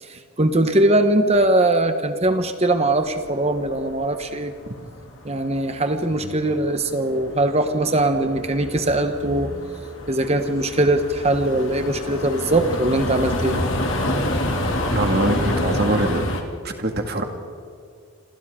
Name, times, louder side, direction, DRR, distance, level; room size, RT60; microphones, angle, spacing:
voice 1, 0.0-4.5 5.2-9.6 10.1-13.6, right 1 dB, 30° right, 7 dB, 1.1 m, -21 dB
sound 1, 2.9-5.2 5.4-16.4, left 1 dB, 60° left, 2.6 m, -28 dB
voice 2, 14.9-16.3 16.6-17.2, right 1 dB, 45° right, 4 dB, 2.1 m, -23 dB
28.0 x 26.5 x 3.8 m, 2.3 s
head